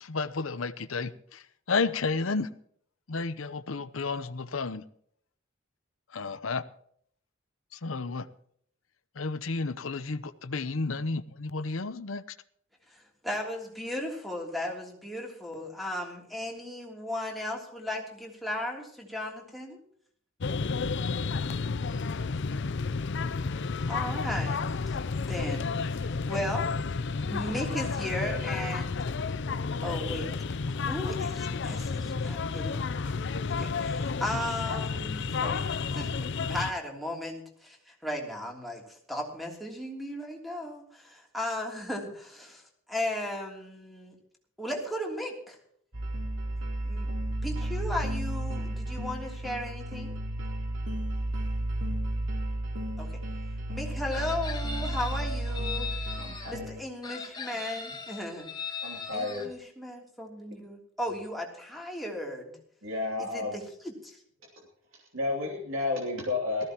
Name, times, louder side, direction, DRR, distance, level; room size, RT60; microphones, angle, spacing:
voice 1, 0.0-1.4 1.7-2.5 3.1-4.8 6.1-6.6 7.7-8.3 9.2-12.2, left 4 dB, 85° left, 0.8 m, -32 dB
voice 2, 12.9-19.8 23.9-26.8 27.3-29.1 29.8-30.3 30.7-33.2 33.6-42.6 42.9-44.1 44.6-45.6 46.8-47.1 47.4-50.2 53.0-53.2 53.7-55.9 56.5-58.5 59.1-62.6 63.2-64.2, left 1 dB, ahead, 3.2 m, -36 dB
sound 1, 20.4-36.7, left 4 dB, 65° left, 0.6 m, -31 dB
sound 2, 45.9-56.8, right 1 dB, 65° right, 3.5 m, -33 dB
Chicken rooster, 54.1-56.5 57.0-59.5, left 5 dB, 20° left, 1.5 m, -39 dB
voice 3, 56.2-56.7 58.8-59.5 62.8-63.6 64.9-66.6, left 3 dB, 90° right, 3.1 m, -32 dB
18.5 x 15.0 x 3.0 m
head